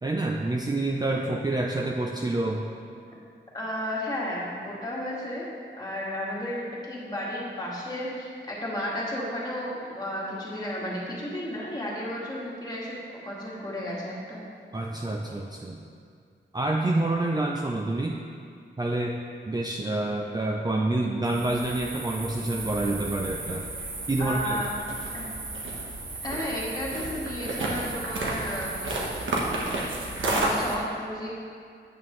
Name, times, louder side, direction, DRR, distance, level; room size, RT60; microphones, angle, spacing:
voice 1, 0.0-2.7 14.7-15.8 16.5-18.2 18.8-19.2 19.5-23.7 24.1-24.6, right 2 dB, 20° right, 0 dB, 0.5 m, -27 dB
voice 2, 3.5-5.5 5.8-13.0 13.2-14.4 24.2-24.7 25.1-25.3 26.2-29.1 30.2-31.3, left 1 dB, 20° left, -6 dB, 1.8 m, -33 dB
sound 1, 21.2-30.8, right 2 dB, 90° right, 1.2 m, -32 dB
8.7 x 8.5 x 3.2 m, 2.2 s
wide cardioid pair, 140°, 19 cm